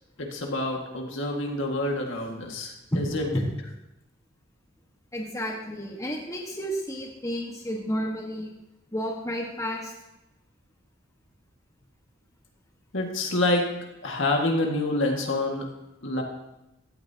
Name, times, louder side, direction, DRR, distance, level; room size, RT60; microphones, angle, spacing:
voice 1, 0.2-3.2 12.9-13.7 14.0-15.7 16.0-16.2, left 2 dB, 60° left, 1 dB, 2.0 m, -27 dB
voice 2, 5.1-8.5 8.9-9.9, equal, 15° left, -1 dB, 1.5 m, -31 dB
16.0 x 12.5 x 2.9 m, 0.92 s
head